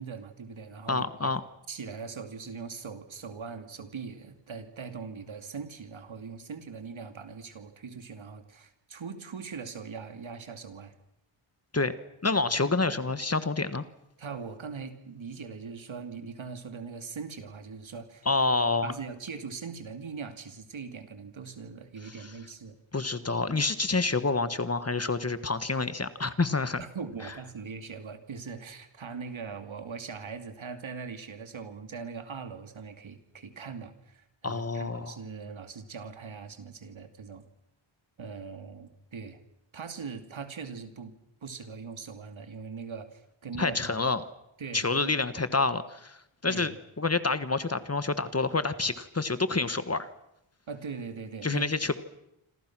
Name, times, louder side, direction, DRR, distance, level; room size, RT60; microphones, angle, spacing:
voice 1, 0.0-1.3 1.7-10.9 14.2-18.3 18.8-22.8 26.8-37.4 38.2-39.4 39.7-44.0 44.6-45.1 46.4-46.7 50.7-51.7, right 5 dB, 70° right, 8 dB, 2.7 m, -41 dB
voice 2, 0.9-1.4 11.7-11.9 12.2-13.8 18.2-19.0 22.0-22.3 22.9-26.9 34.4-35.2 43.6-44.2 44.7-50.1 51.4-51.9, left 3 dB, 30° left, 12 dB, 1.4 m, -28 dB
27.5 x 26.5 x 6.2 m, 0.82 s
wide cardioid pair, 110°, 49 cm